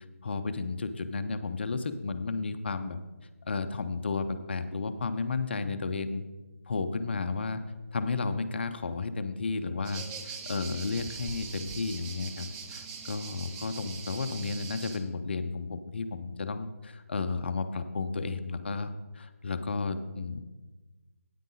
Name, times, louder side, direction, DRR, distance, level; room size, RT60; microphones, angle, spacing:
voice 1, 0.2-3.0 3.4-6.2 6.7-7.7 7.9-20.4, left 4 dB, 45° left, 10 dB, 0.6 m, -33 dB
sound 1, 9.8-15.0, right 5 dB, 10° right, 0.4 m, -42 dB
9.2 x 9.1 x 4.1 m, 1.2 s
figure-of-eight pair, 155°, 8 cm